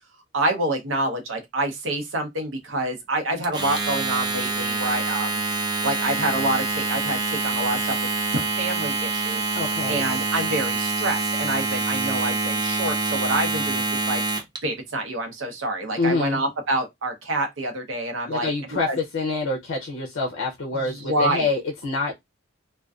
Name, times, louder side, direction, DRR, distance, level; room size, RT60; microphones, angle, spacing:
voice 1, 0.3-5.4 5.8-7.9 8.3-9.4 9.9-14.2 14.6-18.5 18.9-19.0 20.7-21.5, right 2 dB, 80° right, 0.7 m, -27 dB
Domestic sounds home sounds, 3.4-14.6, right 3 dB, 20° right, 0.4 m, -26 dB
voice 2, 9.5-10.1 16.0-16.4 18.3-22.1, left 3 dB, 85° left, 0.5 m, -26 dB
2.4 x 2.2 x 2.3 m
head